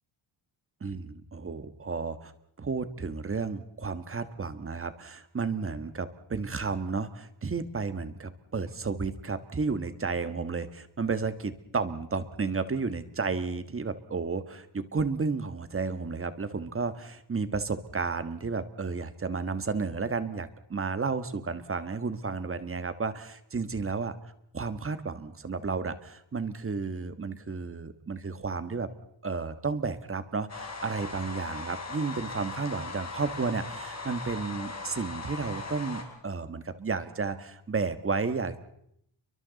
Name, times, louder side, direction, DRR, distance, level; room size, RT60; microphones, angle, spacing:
voice 1, 0.8-2.3 2.6-24.1 24.5-28.9 29.2-38.6, right 4 dB, 25° right, 11 dB, 1.4 m, -32 dB
sound 1, 30.5-36.0, left 3 dB, 35° left, 4.3 m, -39 dB
29.5 x 23.5 x 4.0 m, 0.73 s
cardioid pair, 125°, 48 cm